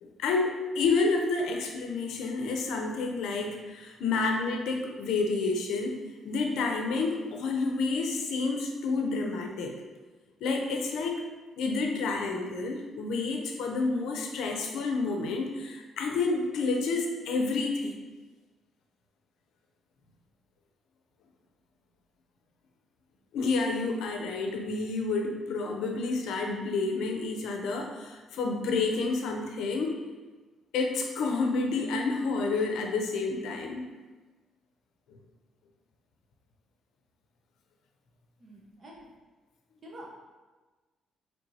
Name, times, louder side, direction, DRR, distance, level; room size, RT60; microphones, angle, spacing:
voice 1, 0.0-9.7 10.4-11.2 11.6-17.9 23.3-29.9 30.7-33.8 35.1-35.2, left 3 dB, 85° left, 2 dB, 0.6 m, -29 dB
voice 2, 38.4-39.0 39.8-40.1, right 1 dB, 40° right, -3 dB, 1.1 m, -47 dB
4.5 x 3.2 x 2.7 m, 1.3 s
cardioid pair, 90°, 0 cm